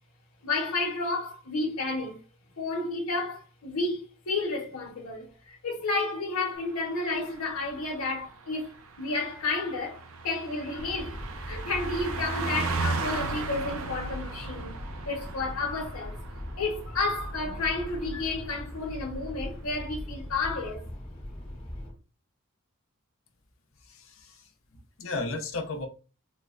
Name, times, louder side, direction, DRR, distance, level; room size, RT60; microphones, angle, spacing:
voice 1, 0.4-2.2 2.6-8.7 9.0-11.2 11.5-14.7 15.0-16.2 16.6-20.8, left 3 dB, 90° left, 1.0 m, -31 dB
Car passing by, 6.6-18.6 18.9-19.1, right 4 dB, 80° right, 0.5 m, -37 dB
sound 1, 10.8-21.9, left 1 dB, 25° left, 1.2 m, -40 dB
voice 2, 23.8-24.5 25.0-25.9, left 3 dB, 65° left, 0.7 m, -34 dB
4.2 x 2.1 x 2.4 m
head